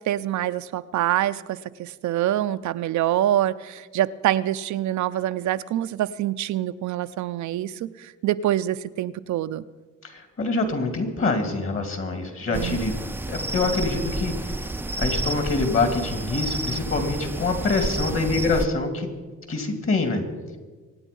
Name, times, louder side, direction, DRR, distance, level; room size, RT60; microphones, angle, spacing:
voice 1, 0.0-9.6 12.5-12.8 18.0-18.2, right 12 dB, 70° right, 12 dB, 0.6 m, -25 dB
voice 2, 10.0-12.9 13.3-14.7 15.0-19.1 19.5-20.2, left 3 dB, 45° left, 6 dB, 2.9 m, -25 dB
sound 1, 12.5-18.7, right 2 dB, 5° right, 0.5 m, -30 dB
24.0 x 9.3 x 5.4 m, 1.3 s
cardioid pair, 90°, 30 cm